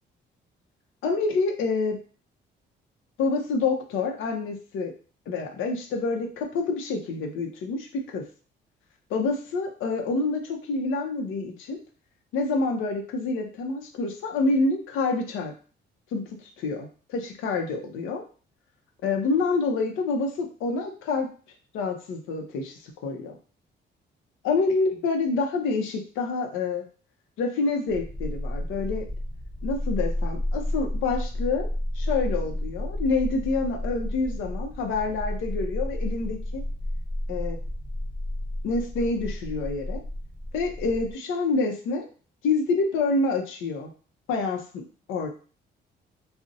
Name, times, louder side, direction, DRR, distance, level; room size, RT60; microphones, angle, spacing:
voice 1, 1.0-2.0 3.2-4.9 5.3-8.2 9.1-11.8 12.3-15.5 16.1-16.2 16.6-18.2 19.0-21.3 21.7-23.3 24.4-26.8 27.4-29.1 29.6-31.7 32.0-36.6 37.3-37.6 38.6-40.0 40.5-42.1 42.4-43.9 44.3-44.6 45.1-45.3, left 3 dB, 85° left, 3 dB, 0.5 m, -27 dB
sound 1, 27.9-41.1, left 1 dB, 20° right, 0.5 m, -31 dB
2.5 x 2.0 x 2.5 m, 0.38 s
cardioid pair, 90°, 20 cm